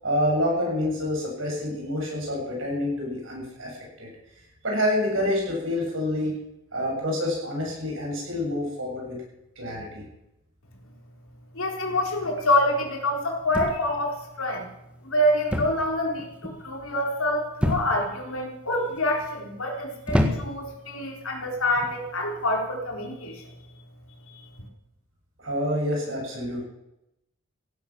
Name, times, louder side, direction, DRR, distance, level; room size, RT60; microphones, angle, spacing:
voice 1, 0.0-4.1 4.6-6.3 6.7-9.2 9.6-10.0 25.4-26.6, left 1 dB, 60° right, -1 dB, 7.5 m, -27 dB
voice 2, 11.5-14.7 15.0-23.5, left 1 dB, 80° left, 1 dB, 4.2 m, -26 dB
sound 1, 13.5-14.1 15.5-15.9 16.2-16.6 17.6-18.2 18.9-19.3 20.1-20.7 21.7-21.9, left 1 dB, 5° right, 1.7 m, -27 dB
16.0 x 11.0 x 7.6 m, 0.87 s
head